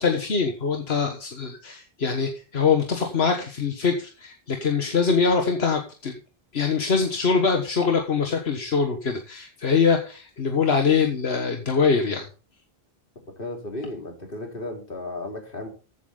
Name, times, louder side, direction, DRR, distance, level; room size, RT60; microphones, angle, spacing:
voice 1, 0.0-6.2 6.5-12.3, left 5 dB, 85° left, 4 dB, 1.6 m, -23 dB
voice 2, 13.4-15.7, left 2 dB, 60° left, 1 dB, 3.7 m, -34 dB
14.5 x 8.3 x 3.9 m, 0.36 s
omnidirectional pair, 1.0 m